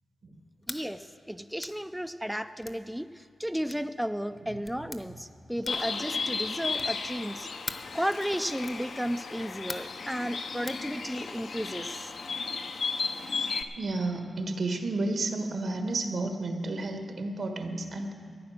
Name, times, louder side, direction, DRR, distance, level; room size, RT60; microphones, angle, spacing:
sound 1, 0.6-0.9 1.6-1.8 2.6-2.8 3.7-3.9 4.6-5.0 5.6-6.0 6.7-7.0 7.7-7.9 8.6-8.9 9.7-10.0 10.7-10.8, left 3 dB, 40° left, 0.9 m, -41 dB
voice 1, 0.7-7.5 7.9-12.1, equal, ahead, 10 dB, 0.4 m, -34 dB
voice 2, 4.4-5.2 13.4-13.5 13.7-18.1, right 2 dB, 70° right, 5 dB, 1.4 m, -32 dB
Bird, 5.7-13.6, left 4 dB, 75° left, 0.8 m, -34 dB
14.5 x 9.3 x 6.5 m, 2.4 s
cardioid pair, 75°, 0 cm